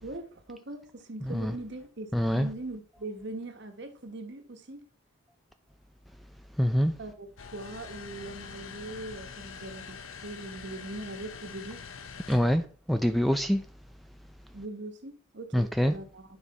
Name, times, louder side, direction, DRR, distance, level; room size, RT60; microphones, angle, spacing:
voice 1, 0.0-4.9 7.0-11.8 14.5-16.2, right 2 dB, 55° right, 1.2 m, -41 dB
voice 2, 1.2-1.5 2.1-2.5 6.5-7.0 12.3-13.7 15.5-16.0, equal, ahead, 0.3 m, -25 dB
sound 1, 7.4-12.6, left 6 dB, 75° left, 0.8 m, -44 dB
9.7 x 5.0 x 4.1 m
head